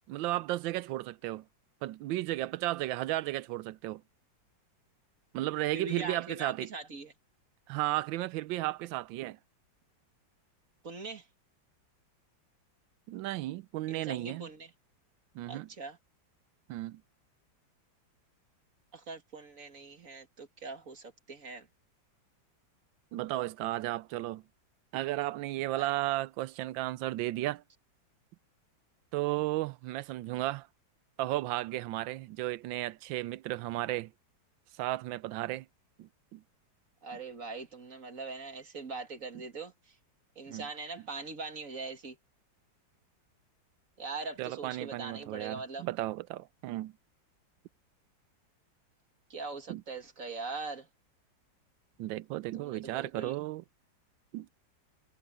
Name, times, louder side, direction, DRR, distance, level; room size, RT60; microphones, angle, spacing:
voice 1, 0.1-1.5 1.8-4.0 5.3-6.7 7.7-9.4 13.1-14.5 15.3-15.7 16.7-17.0 23.1-24.4 24.9-27.6 29.1-30.7 31.2-34.1 34.7-35.7 36.0-36.4 40.5-40.7 44.4-46.9 49.7-49.8 52.0-53.6 54.3-54.5, right 16 dB, 85° right, 1.3 m, -34 dB
voice 2, 5.7-7.1 10.8-11.3 13.9-14.7 15.5-16.0 18.9-21.7 25.7-25.9 37.0-40.0 40.4-42.2 44.0-45.9 49.3-50.9 52.5-53.4, right 3 dB, 45° right, 2.2 m, -42 dB
omnidirectional pair, 2.1 m